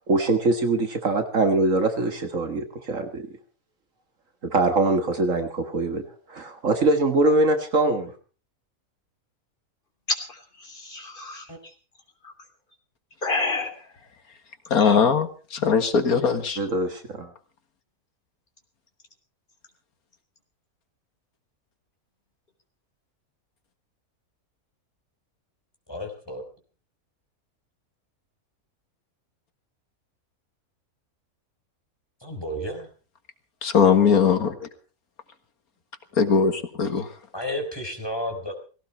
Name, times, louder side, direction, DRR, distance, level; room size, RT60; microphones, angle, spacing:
voice 1, 0.1-3.3 4.4-6.0 6.3-8.1 16.6-17.3, right 2 dB, 60° right, 2.0 m, -23 dB
voice 2, 10.1-11.5 13.2-13.9 14.8-15.0, left 3 dB, 35° left, 3.5 m, -29 dB
voice 3, 14.7-16.6 33.6-34.7 36.2-37.1, left 6 dB, 75° left, 2.1 m, -20 dB
voice 4, 25.9-26.4 32.2-32.9 36.9-37.0 37.3-38.5, equal, 15° left, 4.1 m, -32 dB
18.0 x 17.0 x 4.4 m
omnidirectional pair, 1.6 m